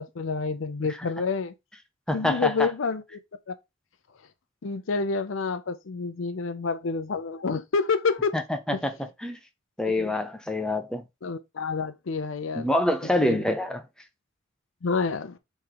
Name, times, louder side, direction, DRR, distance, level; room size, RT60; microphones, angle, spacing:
voice 1, 0.0-1.5 2.1-3.0 3.5-3.6 4.6-8.4 8.7-8.8 9.8-10.1 11.2-12.7 13.2-13.4 14.8-15.4, left 4 dB, 70° left, 0.6 m, -28 dB
voice 2, 2.1-2.7 8.3-9.0 9.2-9.4 9.8-11.0 12.5-13.8, left 1 dB, 5° left, 0.5 m, -26 dB
3.6 x 3.2 x 4.5 m
head